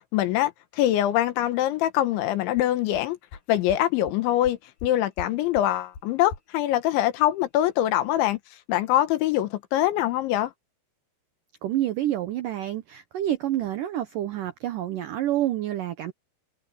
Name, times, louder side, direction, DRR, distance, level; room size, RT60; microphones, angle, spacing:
voice 1, 0.1-3.2 3.5-8.4 8.7-10.5, left 13 dB, 85° left, 3.7 m, -24 dB
sound 1, 2.6-2.7 2.9-3.0 3.3-3.4 3.7-3.8 4.1-4.2 4.4-4.9 5.2-5.3 5.5-5.6 5.9-6.0 6.3-6.4, left 5 dB, 55° left, 5.2 m, -38 dB
voice 2, 11.6-16.1, right 13 dB, 85° right, 1.9 m, -28 dB
omnidirectional pair, 5.2 m